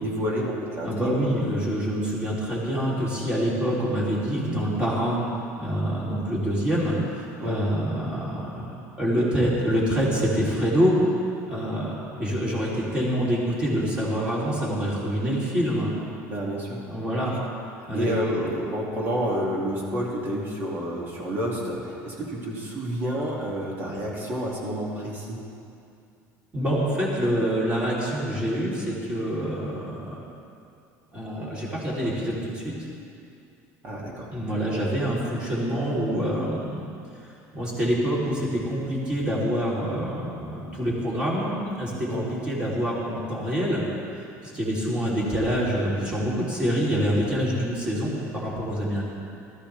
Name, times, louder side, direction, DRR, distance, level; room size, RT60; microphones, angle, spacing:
voice 1, 0.0-1.1 7.4-7.6 16.3-16.9 17.9-25.4 33.8-34.3 42.1-42.3, equal, 30° right, -4 dB, 2.4 m, -29 dB
voice 2, 0.8-5.2 5.6-8.7 9.0-11.0 11.5-15.9 16.9-17.3 17.8-18.1 26.5-30.2 31.1-32.7 34.3-36.8 37.5-43.8 44.4-49.0, equal, 15° right, -6 dB, 3.2 m, -26 dB
19.0 x 13.5 x 3.4 m, 2.6 s
cardioid pair, 170°, 6 cm